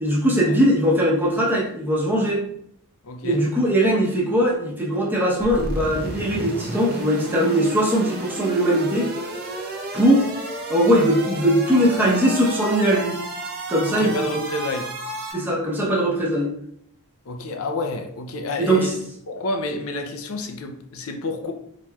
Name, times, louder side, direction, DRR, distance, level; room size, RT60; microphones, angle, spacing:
voice 1, 0.0-2.4 3.2-9.1 9.9-10.3 10.7-13.2 13.7-14.4 15.3-16.5 18.6-18.9, right 1 dB, 10° right, -5 dB, 0.8 m, -20 dB
voice 2, 3.0-3.4 13.9-14.9 17.3-19.0 19.3-21.5, left 2 dB, 65° left, 5 dB, 0.5 m, -29 dB
sound 1, 5.4-15.3, right 1 dB, 45° right, 0.7 m, -32 dB
4.2 x 3.1 x 2.3 m, 0.71 s
head